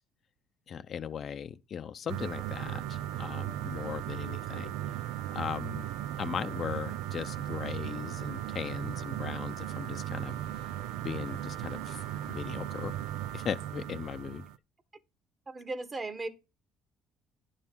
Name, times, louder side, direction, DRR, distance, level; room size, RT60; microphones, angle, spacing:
voice 1, 0.7-4.7 5.3-5.9 6.2-10.4 11.0-13.0 13.3-14.4, left 8 dB, 50° left, 0.6 m, -38 dB
sound 1, 2.1-14.6, right 13 dB, 90° right, 0.5 m, -37 dB
voice 2, 15.5-16.3, right 3 dB, 25° right, 1.3 m, -36 dB
10.5 x 5.6 x 4.6 m
cardioid pair, 110°, 0 cm